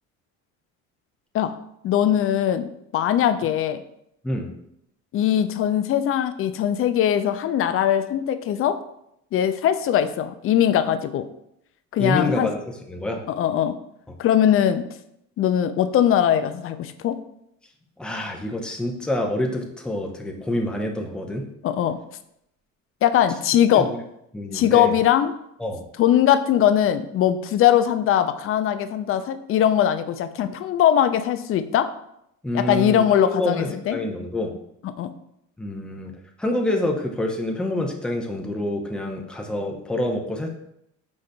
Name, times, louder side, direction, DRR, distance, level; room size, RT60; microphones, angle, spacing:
voice 1, 1.8-3.8 5.1-8.8 9.3-11.3 11.9-12.5 13.3-13.8 14.2-14.8 15.4-17.2 21.6-22.0 23.0-23.9 24.5-25.3 26.0-31.9 32.5-34.0 34.8-35.1, left 10 dB, 35° left, 11 dB, 0.4 m, -21 dB
voice 2, 12.0-13.2 18.0-21.4 23.7-24.0 24.3-24.9 25.6-25.8 32.4-34.5 35.6-36.1 36.4-40.5, left 1 dB, ahead, 1 dB, 0.7 m, -27 dB
4.8 x 4.1 x 2.2 m, 0.77 s
hypercardioid pair, 65°, 40 cm